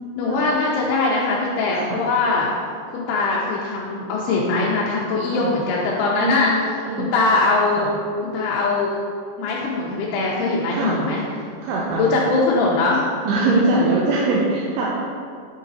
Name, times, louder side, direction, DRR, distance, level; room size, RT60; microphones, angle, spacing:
voice 1, 0.2-2.5 2.9-6.5 6.9-7.9 8.2-9.0 9.4-11.2 12.0-13.0 13.7-13.9, left 3 dB, 80° left, -4 dB, 2.5 m, -21 dB
voice 2, 6.2-7.1 7.7-7.9 10.7-11.0 11.6-12.1 13.3-14.9, right 2 dB, 80° right, -5 dB, 2.6 m, -22 dB
7.6 x 5.0 x 2.6 m, 2.3 s
omnidirectional pair, 5.0 m